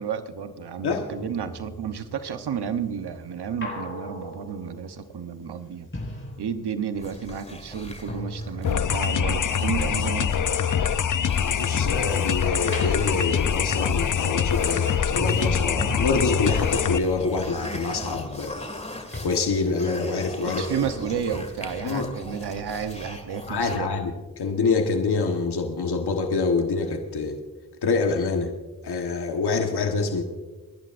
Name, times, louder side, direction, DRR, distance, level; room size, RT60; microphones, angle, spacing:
voice 1, 0.0-5.9 6.4-10.6 20.4-23.9, right 7 dB, 80° right, 9 dB, 1.0 m, -32 dB
sound 1, 1.1-7.1 7.3-12.2 12.6-18.9 19.1-19.2, left 1 dB, 30° left, 4.9 m, -38 dB
sound 2, 6.9-23.8, left 1 dB, 15° left, 2.2 m, -39 dB
sound 3, 8.6-17.0, left 8 dB, 50° left, 0.7 m, -24 dB
voice 2, 11.4-18.6 19.2-20.6 21.8-22.1 23.5-27.4 27.8-28.5 28.8-30.2, left 4 dB, 75° left, 4 dB, 1.4 m, -26 dB
29.0 x 11.0 x 2.6 m, 1.3 s
cardioid pair, 45°, 39 cm